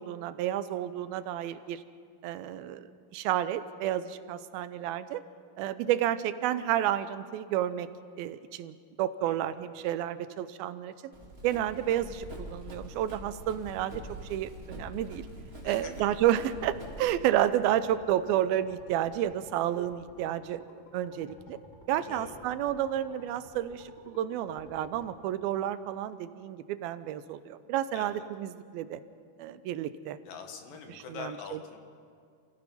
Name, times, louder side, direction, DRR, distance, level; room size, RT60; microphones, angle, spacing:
voice 1, 0.0-1.8 2.2-2.9 3.1-5.2 5.6-7.9 8.2-11.1 11.4-15.3 15.6-20.6 20.9-21.6 21.9-29.0 29.4-30.2 30.9-31.6, right 11 dB, 90° right, 13 dB, 2.6 m, -31 dB
voice 2, 9.2-9.6 15.6-16.1 21.9-22.4 27.9-28.2 30.3-31.8, left 6 dB, 70° left, 4 dB, 3.2 m, -44 dB
Run, 11.1-17.2, equal, 20° right, 2.8 m, -45 dB
sound 1, 16.4-25.1, left 2 dB, 30° left, 1.6 m, -53 dB
29.0 x 16.0 x 5.6 m, 2.2 s
omnidirectional pair, 4.2 m